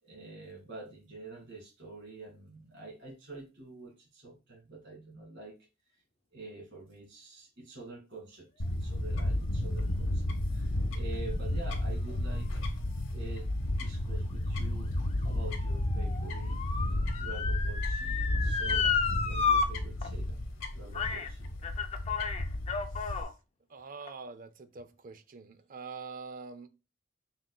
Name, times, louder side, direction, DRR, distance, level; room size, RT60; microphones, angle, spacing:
voice 1, 0.0-5.6 5.9-6.0 6.3-12.6 13.1-16.6 17.1-19.0 19.2-21.5, right 3 dB, 60° right, 2.6 m, -47 dB
Fowl / Bird, 8.6-23.2, left 1 dB, 85° left, 1.0 m, -32 dB
Motor vehicle (road) / Siren, 14.5-19.7 20.0-20.1 20.9-21.3 21.6-23.3 24.0-24.1, left 6 dB, 30° left, 0.6 m, -32 dB
voice 2, 23.7-26.7, right 4 dB, 45° right, 0.5 m, -45 dB
5.4 x 3.9 x 2.3 m
head